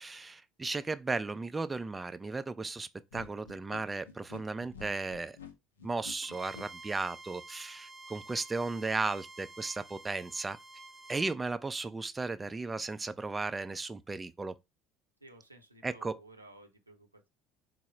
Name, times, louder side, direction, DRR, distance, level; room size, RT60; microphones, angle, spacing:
voice 1, 0.0-5.4 5.8-10.6 11.1-14.5 15.8-16.1, right 3 dB, 15° right, 0.3 m, -35 dB
sound 1, 3.1-6.7, left 5 dB, 75° left, 0.5 m, -49 dB
Bowed string instrument, 6.2-11.4, right 3 dB, ahead, 0.7 m, -50 dB
voice 2, 15.2-17.3, right 2 dB, 90° right, 0.6 m, -55 dB
4.5 x 2.1 x 4.3 m
figure-of-eight pair, 65°, 0 cm